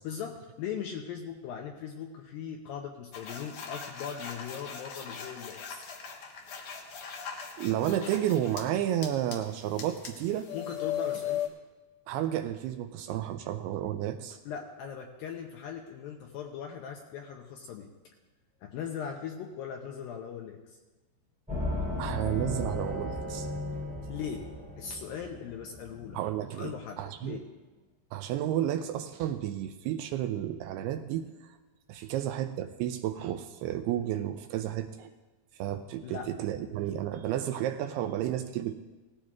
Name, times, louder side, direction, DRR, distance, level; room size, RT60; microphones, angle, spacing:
voice 1, 0.0-5.8 10.5-11.5 14.5-17.9 18.6-20.8 24.1-24.5 24.8-26.2 26.6-27.4 36.0-36.3, left 7 dB, 80° left, 2 dB, 2.1 m, -39 dB
sound 1, 3.1-8.6 9.0-11.5, left 9 dB, 65° left, 2.2 m, -38 dB
voice 2, 7.6-10.5 12.1-14.4 22.0-23.5 26.1-27.4 28.1-31.5 31.9-35.1 35.6-38.7, right 11 dB, 85° right, 8 dB, 2.4 m, -32 dB
sound 2, 21.5-26.2, left 1 dB, ahead, 2.8 m, -35 dB
18.5 x 14.5 x 2.4 m, 1.2 s
omnidirectional pair, 4.9 m